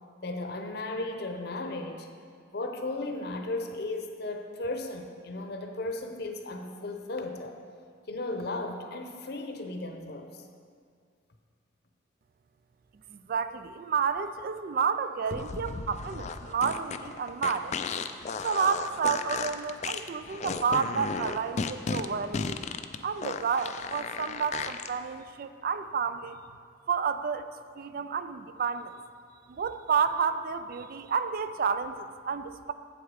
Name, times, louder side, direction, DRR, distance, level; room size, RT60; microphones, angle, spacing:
voice 1, 0.2-2.1 2.5-7.6 8.1-10.4, left 2 dB, 60° left, 5 dB, 0.8 m, -35 dB
voice 2, 13.1-17.8 18.4-22.6 23.0-26.4 26.9-28.9 29.5-32.7, right 6 dB, 50° right, 12 dB, 0.3 m, -30 dB
sound 1, 15.3-24.9, left 5 dB, 35° left, 0.3 m, -34 dB
8.1 x 8.0 x 4.9 m, 2.2 s
head